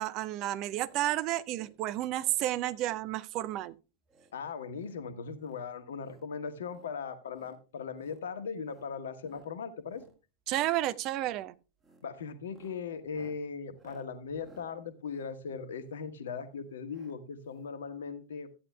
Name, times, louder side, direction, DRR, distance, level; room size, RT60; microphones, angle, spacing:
voice 1, 0.0-3.8 10.5-11.5, right 14 dB, 40° right, 0.6 m, -31 dB
sound 1, 0.8-1.1 1.4-1.8 2.1-2.4 2.8-3.0 3.4-3.7 4.0-4.3 4.7-5.0 5.4-6.3 6.6-6.9 7.3-7.6 7.9-8.2 8.6-8.9 9.2-9.5 9.9-10.2 10.5-10.8 11.1-11.4 11.8-12.1 12.4-16.1 16.9-17.2 17.4-17.5 17.7-17.8, right 3 dB, 15° right, 1.7 m, -61 dB
voice 2, 4.3-10.0 12.0-18.5, left 5 dB, 65° left, 1.2 m, -39 dB
14.0 x 9.8 x 2.3 m
figure-of-eight pair, 90°, 0 cm